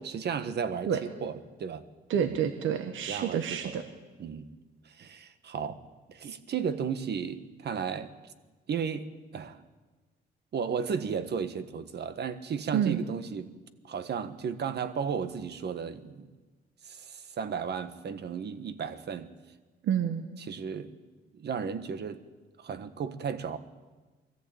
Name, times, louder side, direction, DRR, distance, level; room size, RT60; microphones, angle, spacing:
voice 1, 0.0-1.8 2.1-2.4 3.1-3.8 4.2-4.5 4.8-5.8 6.1-8.1 8.7-9.6 10.5-13.5 13.8-16.3 16.8-19.3 20.4-20.9 21.3-22.2 22.6-23.6, right 6 dB, 55° right, 11 dB, 1.5 m, -34 dB
voice 2, 2.1-3.8 12.7-13.0 19.8-20.2, right 8 dB, 75° right, 7 dB, 1.4 m, -28 dB
22.0 x 14.5 x 8.8 m, 1.3 s
cardioid pair, 90°, 20 cm